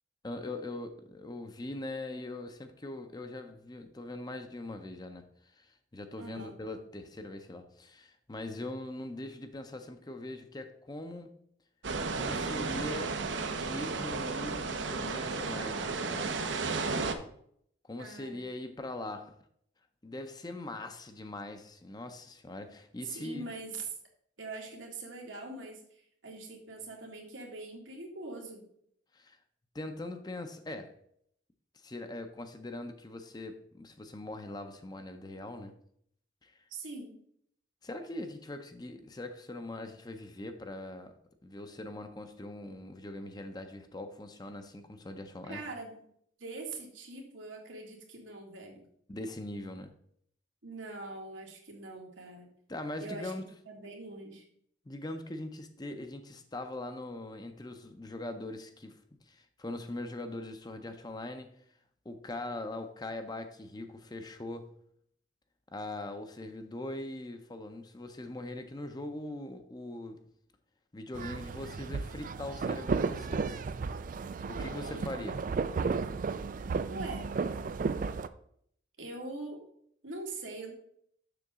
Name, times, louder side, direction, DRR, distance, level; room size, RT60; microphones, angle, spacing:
voice 1, 0.2-11.3 12.1-13.2 13.5-16.4 17.9-19.4 20.0-23.5 29.1-29.4 29.7-30.9 31.7-35.7 36.4-36.6 37.8-41.1 41.4-45.6 49.1-49.9 52.7-53.4 54.9-61.5 62.0-64.7 65.7-70.2 70.9-73.6 74.5-75.4, left 2 dB, 20° left, 7 dB, 0.6 m, -41 dB
voice 2, 6.2-6.6 18.0-18.5 23.1-23.8 24.4-28.6 36.7-37.2 45.4-46.0 46.4-48.8 50.6-52.5 53.0-54.4 74.5-75.0 76.9-77.3 79.0-79.6 80.0-80.7, right 2 dB, 90° right, 0 dB, 1.9 m, -43 dB
sound 1, 11.8-17.1, right 4 dB, 75° right, 0.7 m, -33 dB
sound 2, 71.1-78.3, right 4 dB, 45° right, 0.3 m, -34 dB
6.8 x 6.5 x 3.6 m, 0.67 s
head